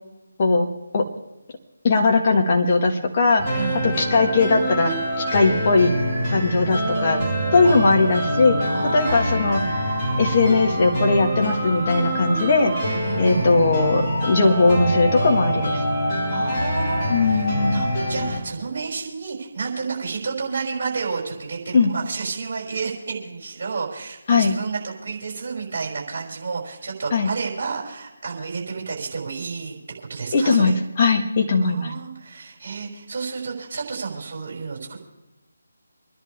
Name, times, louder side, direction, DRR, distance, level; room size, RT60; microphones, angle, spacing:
voice 1, 1.8-5.9 6.3-7.2 7.5-9.6 10.2-12.7 13.2-15.8 17.1-17.8 21.7-21.9 24.3-24.5 27.1-27.3 30.3-31.9, left 3 dB, 30° left, 1 dB, 1.9 m, -19 dB
sound 1, 3.4-18.4, equal, 10° left, 4.6 m, -25 dB
voice 2, 3.5-3.9 7.6-8.2 8.7-9.8 12.8-13.5 16.3-29.8 30.1-30.7 31.6-35.0, right 5 dB, 35° right, -2 dB, 5.8 m, -31 dB
27.0 x 11.0 x 3.5 m, 0.99 s
figure-of-eight pair, 150°, 0 cm